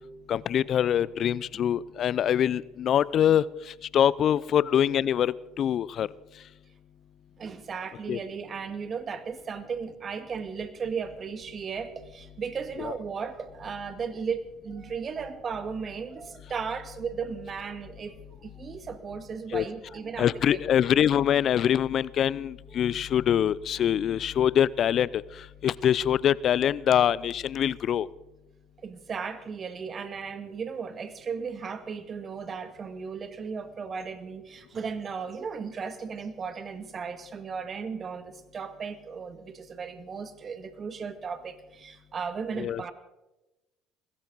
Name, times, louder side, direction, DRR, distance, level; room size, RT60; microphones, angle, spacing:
voice 1, 0.3-3.4 3.9-6.1 8.1-8.2 12.8-12.9 19.5-19.7 20.2-25.1 25.6-28.1 42.6-42.8, left 10 dB, 55° left, 21 dB, 0.5 m, -24 dB
voice 2, 7.4-20.6 28.8-42.9, right 6 dB, 40° right, 10 dB, 1.8 m, -36 dB
21.0 x 16.5 x 4.0 m, 1.0 s
hypercardioid pair, 65°, 0 cm